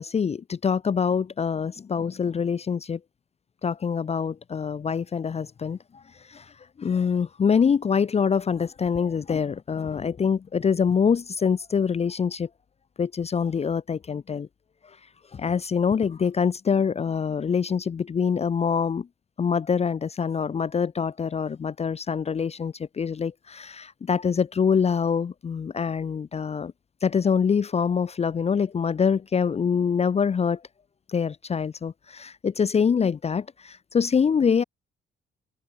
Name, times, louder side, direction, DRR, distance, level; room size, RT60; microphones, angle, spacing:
voice 1, 0.0-3.0 3.6-6.0 6.3-6.5 6.8-12.5 13.0-14.5 15.3-19.1 19.4-26.7 27.0-30.6 31.1-34.6, left 6 dB, 30° left, 0.6 m, -25 dB
cardioid pair, 90°, 20 cm